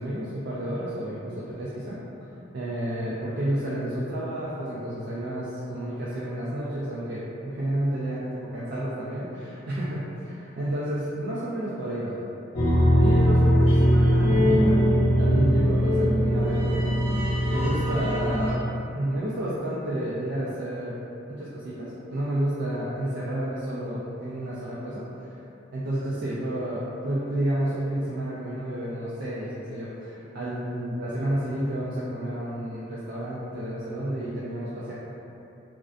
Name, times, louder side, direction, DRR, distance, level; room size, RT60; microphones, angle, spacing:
voice 1, 0.0-2.0 2.5-12.2 13.0-14.9 15.2-18.6 18.9-20.9 21.3-25.3 25.7-34.9, right 1 dB, 60° right, -9 dB, 0.4 m, -30 dB
sound 1, 12.5-18.5, equal, 35° left, 0.6 m, -21 dB
2.4 x 2.1 x 2.4 m, 2.7 s
head